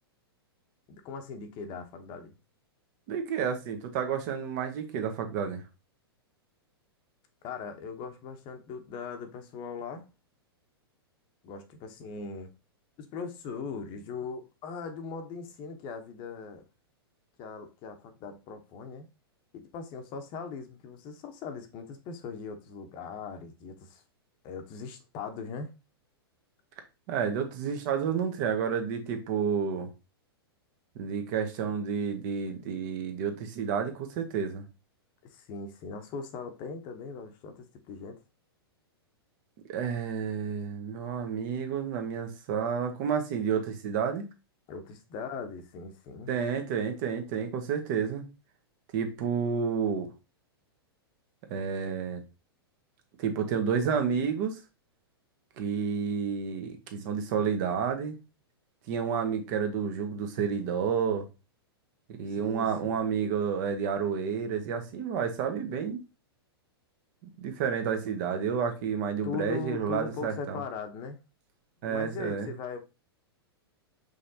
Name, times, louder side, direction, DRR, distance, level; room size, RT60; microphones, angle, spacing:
voice 1, 1.0-2.3 7.4-10.1 11.4-12.5 13.0-16.6 17.4-19.1 19.5-24.0 24.4-25.7 35.3-38.2 44.7-46.3 62.4-63.0 69.2-71.2 71.8-72.8, left 5 dB, 35° left, 0.9 m, -39 dB
voice 2, 3.1-5.6 27.1-29.9 30.9-34.6 39.7-44.2 46.3-48.2 48.9-50.1 51.5-52.2 53.2-54.6 55.6-58.2 58.9-61.3 62.1-66.0 67.4-70.6 71.8-72.5, right 7 dB, 45° right, 1.2 m, -30 dB
5.4 x 3.4 x 2.7 m
hypercardioid pair, 110°, 13 cm